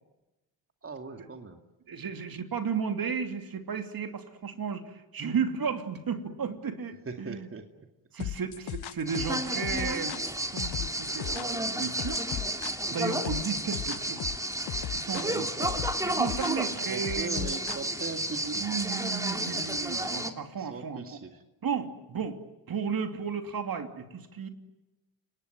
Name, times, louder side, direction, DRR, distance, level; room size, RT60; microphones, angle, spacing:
voice 1, 0.8-1.6 7.1-7.9 8.2-8.3 15.2-15.8 16.5-18.7 20.5-21.3, right 4 dB, 25° right, 5 dB, 2.4 m, -40 dB
voice 2, 1.9-7.5 8.1-10.2 10.5-12.2 12.9-14.2 14.9-15.5 16.0-17.6 18.4-21.2 21.6-22.4 22.7-24.5, right 6 dB, 45° right, 6 dB, 3.0 m, -34 dB
sound 1, 8.2-18.2, left 12 dB, 50° left, 1.0 m, -37 dB
sound 2, 9.1-20.3, right 1 dB, 5° right, 2.9 m, -32 dB
29.5 x 19.0 x 9.3 m, 1.0 s
hypercardioid pair, 60°, 49 cm